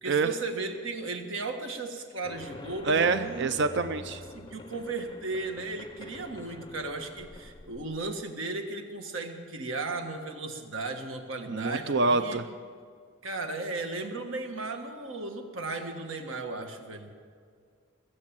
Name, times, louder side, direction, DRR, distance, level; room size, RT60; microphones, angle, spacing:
voice 1, 0.0-3.5 4.3-12.4 13.2-17.1, right 3 dB, 70° right, 5 dB, 1.6 m, -36 dB
sound 1, 2.2-8.3, left 2 dB, 20° left, 0.5 m, -46 dB
voice 2, 2.8-4.2 11.5-12.5, right 4 dB, 55° right, 11 dB, 0.5 m, -26 dB
21.0 x 8.5 x 7.5 m, 2.1 s
head